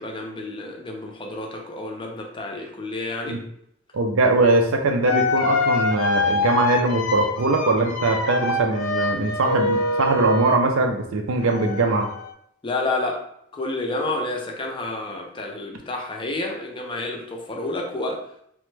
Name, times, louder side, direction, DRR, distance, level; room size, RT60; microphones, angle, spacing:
voice 1, 0.0-3.4 12.6-13.2 13.5-18.3, left 2 dB, 25° left, 2 dB, 0.4 m, -29 dB
voice 2, 3.9-12.1, right 2 dB, 80° right, 4 dB, 0.5 m, -21 dB
sound 1, 4.4-4.5 5.0-10.7 11.4-12.3, left 3 dB, 80° left, 0.4 m, -25 dB
3.0 x 2.1 x 3.2 m, 0.73 s
head